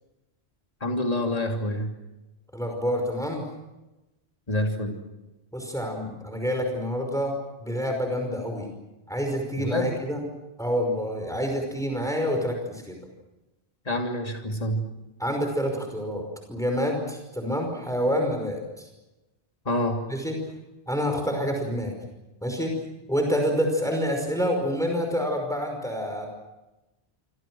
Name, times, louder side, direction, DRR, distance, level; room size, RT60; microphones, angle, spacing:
voice 1, 0.8-1.9 4.5-4.9 9.6-9.9 13.9-14.8 19.6-20.0, left 1 dB, 35° left, 2 dB, 3.1 m, -27 dB
voice 2, 2.5-3.4 5.5-7.3 7.6-8.7 9.1-10.2 10.6-13.0 15.2-18.9 20.1-20.4 20.9-21.9 22.4-22.8 23.1-26.3, equal, 5° left, 3 dB, 5.4 m, -27 dB
28.0 x 26.0 x 6.3 m, 1.0 s
omnidirectional pair, 1.1 m